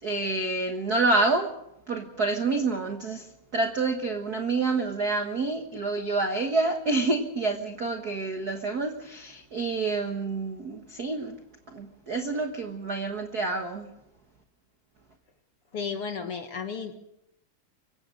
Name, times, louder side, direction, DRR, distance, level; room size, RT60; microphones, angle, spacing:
voice 1, 0.0-1.5 1.9-3.3 3.5-11.4 11.7-13.9, right 3 dB, 55° right, 5 dB, 1.0 m, -28 dB
voice 2, 15.7-17.0, left 5 dB, 55° left, 7 dB, 1.8 m, -33 dB
24.5 x 16.0 x 6.6 m, 0.82 s
omnidirectional pair, 3.8 m